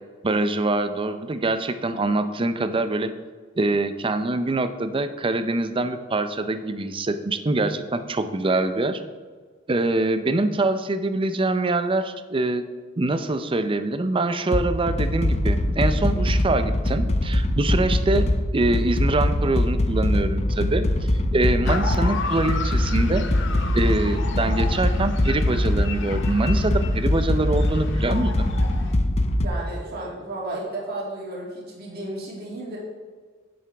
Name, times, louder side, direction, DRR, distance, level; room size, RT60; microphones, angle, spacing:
voice 1, 0.2-3.1 3.6-9.0 9.7-12.6 13.0-20.9 21.3-23.3 23.7-28.5, right 2 dB, 25° right, 10 dB, 0.5 m, -24 dB
sound 1, 14.5-29.5, left 1 dB, 35° left, 0.5 m, -22 dB
sound 2, 21.7-28.9, left 4 dB, 65° left, 0.8 m, -34 dB
voice 2, 29.2-32.8, right 2 dB, 55° right, -5 dB, 2.4 m, -33 dB
9.8 x 7.7 x 3.4 m, 1.5 s
head